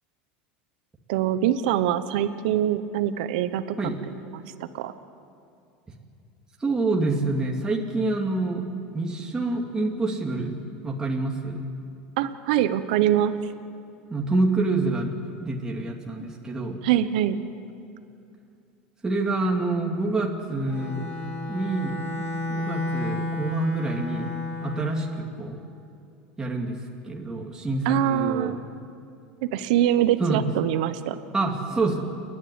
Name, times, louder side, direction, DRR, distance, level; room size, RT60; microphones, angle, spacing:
voice 1, 1.1-3.8 4.3-4.4 4.7-4.9 12.2-13.5 16.8-17.4 27.8-28.6 29.4-31.2, right 11 dB, 75° right, 11 dB, 1.0 m, -24 dB
voice 2, 6.6-8.6 8.9-10.5 10.8-11.6 14.1-15.1 15.4-16.8 19.0-21.1 21.5-22.0 22.5-24.3 24.6-25.6 26.4-26.8 27.0-28.6 30.2-30.4 31.3-32.0, right 2 dB, 15° right, -1 dB, 2.6 m, -27 dB
Bowed string instrument, 20.6-25.1, left 2 dB, 55° left, 4.5 m, -32 dB
29.5 x 11.0 x 9.6 m, 2.5 s
supercardioid pair, 110°, 5 cm